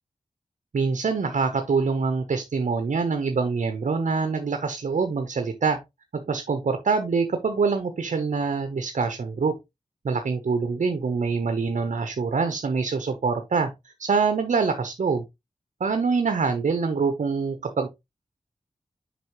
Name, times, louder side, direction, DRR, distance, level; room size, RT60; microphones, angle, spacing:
voice 1, 0.7-5.8 6.1-9.6 10.0-15.2 15.8-17.9, right 4 dB, 80° right, 0.9 m, -25 dB
6.2 x 5.7 x 3.1 m
cardioid pair, 45°, 13 cm